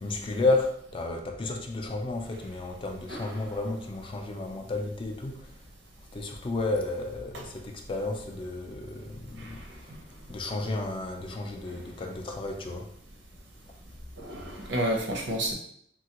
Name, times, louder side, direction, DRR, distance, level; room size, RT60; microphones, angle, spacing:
voice 1, 0.0-5.5 6.1-9.9 10.3-12.9, left 2 dB, 30° left, 0.3 m, -32 dB
voice 2, 14.2-15.5, right 1 dB, 75° right, 0.7 m, -30 dB
3.2 x 2.3 x 2.8 m
head